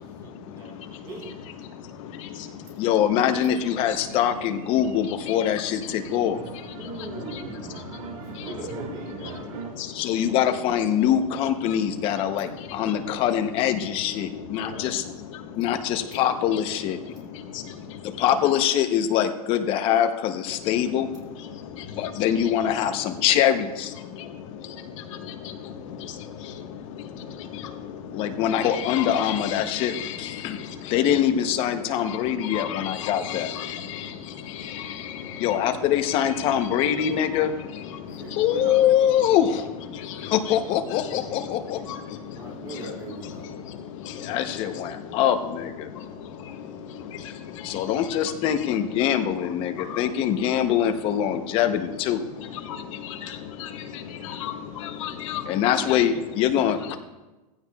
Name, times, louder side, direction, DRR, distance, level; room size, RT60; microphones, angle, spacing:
voice 1, 0.2-1.3 6.3-6.4 6.8-7.8 8.2-9.4 14.6-14.9 38.1-38.8 42.4-43.5, right 2 dB, 20° right, -2 dB, 3.6 m, -39 dB
voice 2, 2.8-6.4 9.9-15.0 15.5-17.0 18.0-21.1 22.0-23.9 28.1-33.5 35.4-37.5 38.4-39.7 40.2-41.8 44.2-45.9 47.6-52.2 55.5-57.0, left 10 dB, 30° left, 8 dB, 0.8 m, -24 dB
sound 1, 3.6-9.8, right 5 dB, 65° right, 1.8 m, -41 dB
voice 3, 21.8-22.5 24.2-24.3 24.6-24.7 25.2-26.6 27.0-27.1 27.4-27.9 28.5-31.2 32.0-34.2 34.4-35.7 36.0-38.0 38.6-38.8 39.1-41.5 41.8-42.2 42.7-42.9 43.2-43.5 44.0-44.8 47.1-48.7 49.4-49.5 49.9-50.0 52.4-55.4 55.9-56.0, left 9 dB, 55° left, 4 dB, 1.4 m, -36 dB
15.5 x 15.5 x 2.3 m, 1.1 s
supercardioid pair, 165°, 19 cm